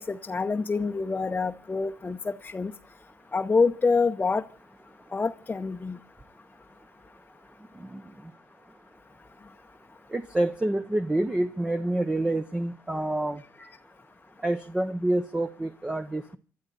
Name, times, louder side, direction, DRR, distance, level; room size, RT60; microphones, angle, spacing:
voice 1, 0.0-2.7 3.3-4.4 5.1-6.0 13.6-13.7, left 4 dB, 25° left, 3 dB, 0.9 m, -26 dB
voice 2, 7.8-8.3 10.1-13.4 14.4-16.4, right 1 dB, 15° right, 7 dB, 0.9 m, -28 dB
28.5 x 12.5 x 4.1 m, 0.39 s
cardioid pair, 85°, 6 cm